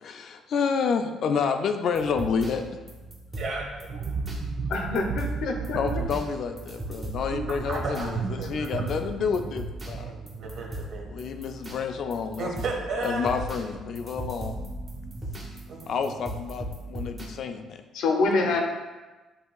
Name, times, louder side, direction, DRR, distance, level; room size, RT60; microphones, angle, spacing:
voice 1, 0.0-2.6 5.7-10.1 11.1-12.5 13.0-14.5 15.9-17.8, left 6 dB, 55° left, 7 dB, 0.3 m, -29 dB
sound 1, 1.9-17.3, right 1 dB, 15° right, 0.8 m, -39 dB
voice 2, 3.4-3.7 7.7-8.8 10.0-11.1 12.4-13.3 15.7-15.8, right 3 dB, 55° right, -1 dB, 1.0 m, -33 dB
sound 2, 3.9-11.3 11.5-11.8, right 4 dB, 40° right, 0.3 m, -35 dB
voice 3, 4.7-5.8 17.9-18.6, left 3 dB, 75° left, 2 dB, 0.7 m, -25 dB
7.9 x 2.8 x 2.3 m, 1.2 s
cardioid pair, 140°, 0 cm